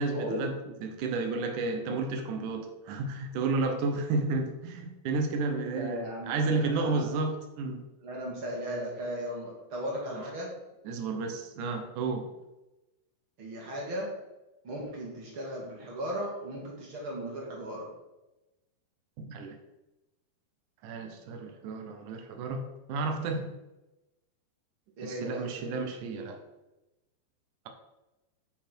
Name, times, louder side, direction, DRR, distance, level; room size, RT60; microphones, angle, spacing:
voice 1, 0.0-7.8 10.1-10.2 10.8-12.3 19.2-19.6 20.8-23.5 25.0-26.4, right 3 dB, 75° right, 5 dB, 1.8 m, -32 dB
voice 2, 5.7-7.1 8.0-10.5 13.4-14.1 14.6-17.9 25.0-25.5, equal, 40° right, -3 dB, 2.1 m, -36 dB
9.7 x 5.7 x 4.5 m, 1.0 s
omnidirectional pair, 5.0 m